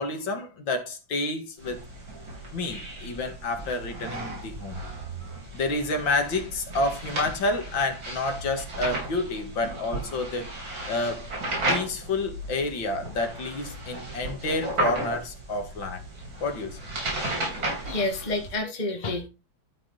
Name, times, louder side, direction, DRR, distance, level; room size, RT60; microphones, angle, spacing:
voice 1, 0.0-1.8 2.5-4.8 5.5-10.5 10.9-11.3 11.7-16.0 16.4-16.8, left 2 dB, 75° left, 2.5 m, -29 dB
sound 1, 1.6-18.6, right 2 dB, 75° right, 4.7 m, -34 dB
voice 2, 17.4-19.3, left 2 dB, 25° left, 1.8 m, -30 dB
12.5 x 4.7 x 4.0 m
omnidirectional pair, 2.1 m